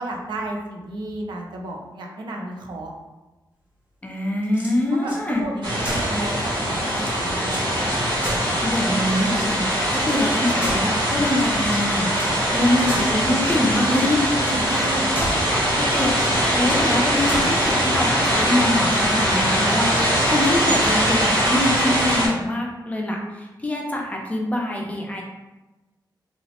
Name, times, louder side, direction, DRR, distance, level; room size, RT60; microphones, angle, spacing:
voice 1, 0.0-2.9 5.0-7.6 10.6-10.7 14.5-15.3, right 1 dB, 70° right, 0 dB, 0.5 m, -33 dB
voice 2, 4.0-5.5 8.6-14.2 14.7-14.9 15.5-16.2 16.5-25.2, left 1 dB, 15° left, -1 dB, 0.4 m, -24 dB
sound 1, 4.4-5.2 5.8-6.2 6.6-6.7 6.9-7.7 8.2-8.9 9.3-10.1 10.6-11.2 11.6-12.4 12.9-13.3 13.8-14.1 14.4-14.6 15.1-15.5 16.1-16.9 17.3-17.6, equal, 15° right, 0.7 m, -32 dB
sound 2, 5.6-22.3, equal, 85° right, 1.1 m, -22 dB
3.0 x 2.0 x 2.8 m, 1.1 s
wide cardioid pair, 145°, 8 cm